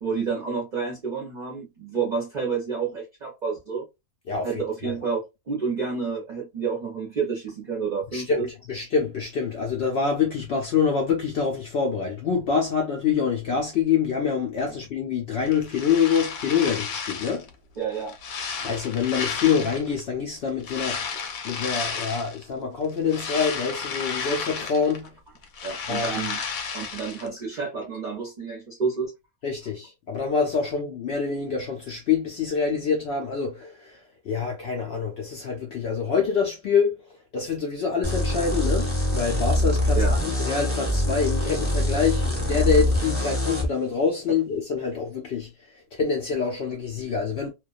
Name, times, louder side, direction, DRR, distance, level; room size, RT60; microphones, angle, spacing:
voice 1, 0.0-3.9 4.4-5.2 5.5-8.5 17.8-18.2 25.6-26.4 26.7-29.1 39.9-40.2, right 5 dB, 45° right, 0.6 m, -29 dB
voice 2, 4.3-5.0 8.1-17.5 18.6-25.1 25.9-26.3 29.4-37.0 37.3-47.5, left 6 dB, 65° left, 0.7 m, -26 dB
sound 1, 15.5-17.5 17.9-20.0 20.6-22.4 22.8-25.1 25.4-27.3, left 5 dB, 85° left, 1.1 m, -32 dB
sound 2, 38.0-43.7, left 1 dB, 10° left, 0.8 m, -24 dB
2.3 x 2.2 x 2.3 m
omnidirectional pair, 1.4 m